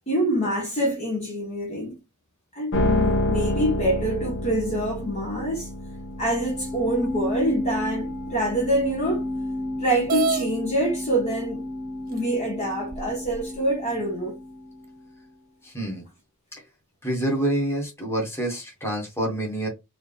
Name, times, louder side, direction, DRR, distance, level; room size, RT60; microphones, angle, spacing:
voice 1, 0.1-2.0 2.5-5.7 6.2-9.3 9.8-11.7 12.1-14.4, right 1 dB, 30° left, 1.4 m, -26 dB
sound 1, 2.7-15.0, left 1 dB, 60° left, 1.1 m, -30 dB
sound 2, 10.1-10.5 11.5-11.6 12.2-12.3 12.9-13.6, right 4 dB, 40° right, 0.4 m, -27 dB
voice 2, 15.6-16.0 17.0-19.7, right 1 dB, 10° left, 1.7 m, -27 dB
4.7 x 2.9 x 3.4 m
head